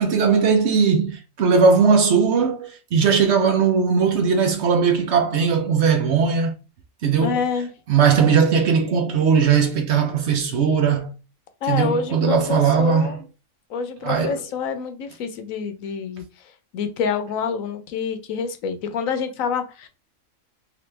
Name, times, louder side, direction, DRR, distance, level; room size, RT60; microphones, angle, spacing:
voice 1, 0.0-6.5 7.0-7.4 7.9-11.1 11.7-13.2 14.0-14.4, right 6 dB, 60° right, 0.9 m, -19 dB
voice 2, 7.2-7.7 11.6-13.2 13.7-19.9, left 6 dB, 75° left, 1.0 m, -27 dB
3.3 x 3.0 x 3.2 m
omnidirectional pair, 1.4 m